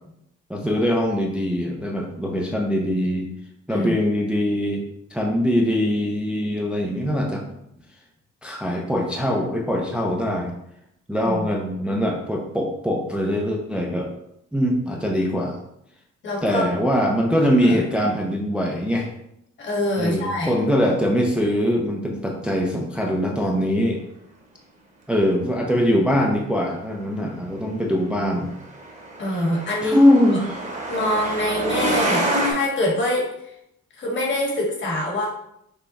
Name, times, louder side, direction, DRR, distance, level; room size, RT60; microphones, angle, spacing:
voice 1, 0.5-3.3 3.7-4.8 5.1-7.5 8.4-10.5 11.1-14.1 14.5-15.6 16.4-19.1 20.0-24.0 25.1-28.5 29.3-29.4 29.8-30.6, equal, 5° right, 0 dB, 0.4 m, -22 dB
voice 2, 16.2-16.6 17.6-17.8 19.6-20.5 29.2-30.0 30.9-33.5 34.0-35.3, left 1 dB, 40° left, -3 dB, 1.4 m, -25 dB
Truck, 28.4-32.5, right 1 dB, 25° right, 0.9 m, -26 dB
5.5 x 2.2 x 4.0 m, 0.79 s
cardioid pair, 145°, 29 cm